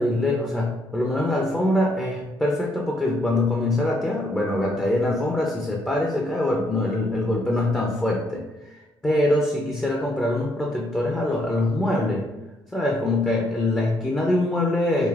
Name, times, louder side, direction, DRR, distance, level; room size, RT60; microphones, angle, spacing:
voice 1, 0.0-8.4 9.0-12.3 12.7-15.1, left 1 dB, 10° left, -1 dB, 0.5 m, -23 dB
4.8 x 2.7 x 2.4 m, 1.0 s
cardioid pair, 135°, 8 cm